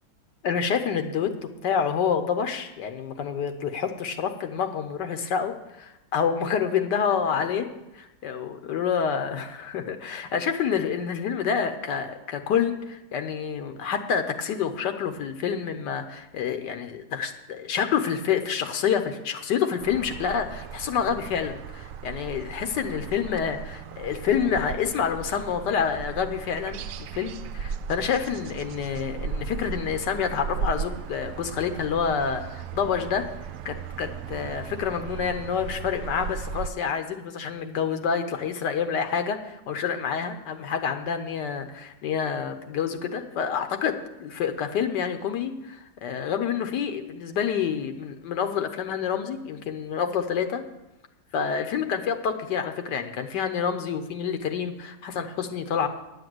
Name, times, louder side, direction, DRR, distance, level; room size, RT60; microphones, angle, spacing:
voice 1, 0.4-1.3 1.6-7.7 7.9-33.3 33.6-50.6 51.3-55.9, left 7 dB, 85° left, 7 dB, 1.6 m, -28 dB
sound 1, 19.8-36.7, right 7 dB, 70° right, 0.8 m, -36 dB
10.0 x 7.7 x 7.8 m, 0.98 s
omnidirectional pair, 1.8 m